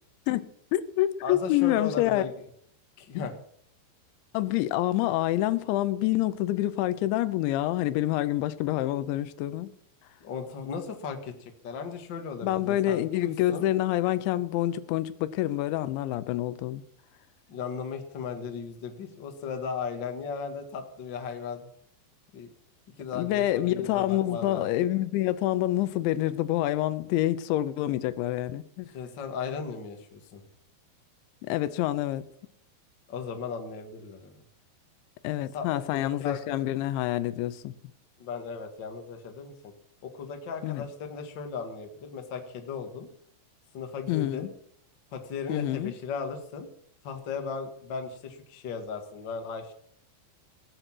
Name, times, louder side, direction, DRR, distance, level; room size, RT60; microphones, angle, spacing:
voice 1, 0.3-2.2 3.1-3.3 4.3-9.7 12.4-16.8 23.2-28.9 31.4-32.3 35.2-37.7 40.6-40.9 44.1-44.5 45.5-45.9, left 14 dB, 90° left, 3.1 m, -27 dB
voice 2, 1.2-2.3 3.0-3.3 10.2-13.7 17.5-21.7 22.3-22.5 23.0-24.6 28.9-30.4 33.1-34.4 35.5-36.6 38.2-39.7 40.0-43.1 43.7-44.5 45.1-46.7 47.0-49.7, left 5 dB, 55° left, 1.2 m, -36 dB
18.5 x 8.1 x 6.1 m
omnidirectional pair, 5.1 m